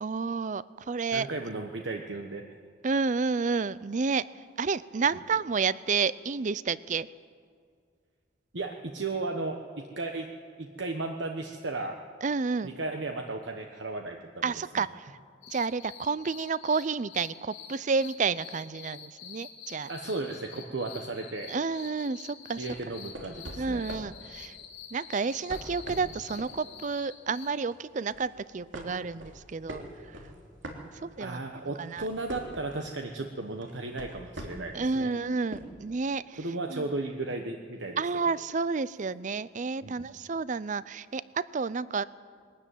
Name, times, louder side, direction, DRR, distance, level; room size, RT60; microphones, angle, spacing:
voice 1, 0.0-1.3 2.8-4.3 4.6-7.1 12.2-12.7 14.4-15.1 15.5-19.9 21.5-22.6 23.6-24.5 24.9-29.8 31.0-31.4 31.8-32.1 34.7-36.4 36.7-36.8 38.0-42.0, right 4 dB, 40° right, 18 dB, 0.5 m, -30 dB
voice 2, 1.1-2.4 8.5-10.3 10.6-11.9 12.6-14.4 14.7-14.9 19.9-21.5 22.6-23.8 31.2-35.1 36.3-38.1 39.8-40.1, right 2 dB, 75° right, 3 dB, 1.2 m, -35 dB
sound 1, 15.4-27.5, left 8 dB, 90° left, 4.0 m, -47 dB
sound 2, 22.5-24.2 25.2-26.6 27.0-27.2 27.7-28.3 28.7-31.3 31.7-32.9 33.6-34.8 35.5-35.6, right 1 dB, 90° right, 3.0 m, -42 dB
21.5 x 13.0 x 9.2 m, 2.1 s
head